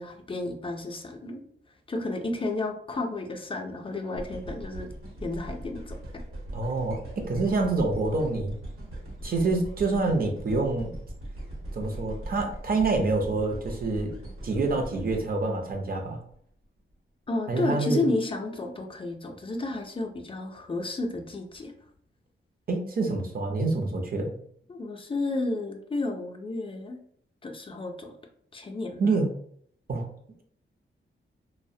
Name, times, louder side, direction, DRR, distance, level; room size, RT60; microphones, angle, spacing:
voice 1, 0.0-1.4 1.9-4.9 5.2-6.0 17.3-21.7 24.7-27.0 27.4-28.1 28.5-29.0, left 2 dB, 25° left, 3 dB, 0.3 m, -32 dB
sound 1, 4.2-16.4 16.9-17.0, right 1 dB, 85° right, 1.0 m, -40 dB
voice 2, 6.5-8.5 9.2-10.9 11.7-14.1 14.4-16.2 17.5-18.1 22.7-24.3 29.0-29.3 29.9-30.1, right 3 dB, 45° right, 2 dB, 0.5 m, -27 dB
2.3 x 2.0 x 2.6 m, 0.63 s
wide cardioid pair, 115°, 21 cm